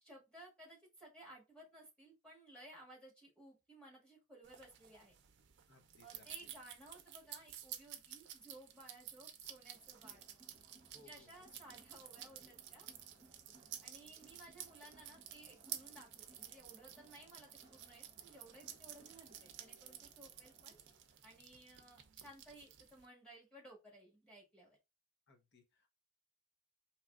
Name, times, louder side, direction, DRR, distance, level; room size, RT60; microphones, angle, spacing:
voice 1, 0.0-5.1 6.0-10.2 11.0-12.9 13.8-20.8 21.2-24.8, right 1 dB, 5° left, 1.6 m, -58 dB
sound 1, 4.4-23.1, right 10 dB, 55° right, 0.5 m, -53 dB
voice 2, 5.7-6.5 10.8-11.5 25.3-25.9, left 2 dB, 50° left, 0.9 m, -66 dB
Crowd, 9.7-21.3, right 1 dB, 15° right, 0.8 m, -67 dB
4.0 x 3.0 x 2.4 m
head